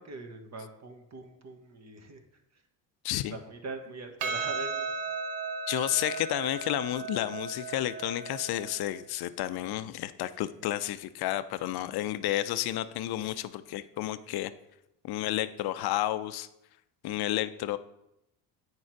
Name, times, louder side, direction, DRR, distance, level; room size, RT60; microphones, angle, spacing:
voice 1, 0.0-2.2 3.1-4.9, right 3 dB, 35° right, 5 dB, 1.5 m, -42 dB
voice 2, 3.0-3.4 5.7-14.5 15.0-16.5 17.0-17.8, left 14 dB, 50° left, 13 dB, 0.6 m, -31 dB
Percussion, 4.2-8.8, right 4 dB, 55° right, 1.1 m, -35 dB
8.6 x 4.8 x 4.6 m, 0.85 s
hypercardioid pair, 70°, 49 cm